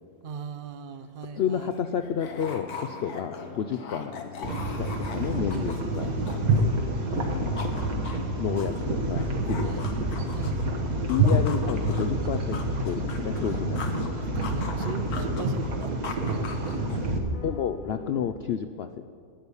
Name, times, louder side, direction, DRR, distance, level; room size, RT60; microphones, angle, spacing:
voice 1, 0.2-1.7 5.5-6.6 9.6-9.9 10.3-10.6 14.3-16.9, right 5 dB, 55° right, 12 dB, 0.6 m, -38 dB
sound 1, 1.0-1.1 1.3-6.9 7.2-10.7 11.1-14.1 14.4-17.2, left 4 dB, 90° left, 1.7 m, -41 dB
voice 2, 1.3-6.1 7.1-7.7 8.4-9.9 11.1-14.2 17.4-19.0, left 8 dB, 70° left, 8 dB, 0.6 m, -31 dB
sound 2, 2.0-18.4, left 4 dB, 40° left, 0.9 m, -45 dB
sound 3, 4.4-17.2, right 1 dB, 75° right, 1.8 m, -28 dB
12.5 x 9.7 x 6.9 m, 2.5 s
omnidirectional pair, 1.5 m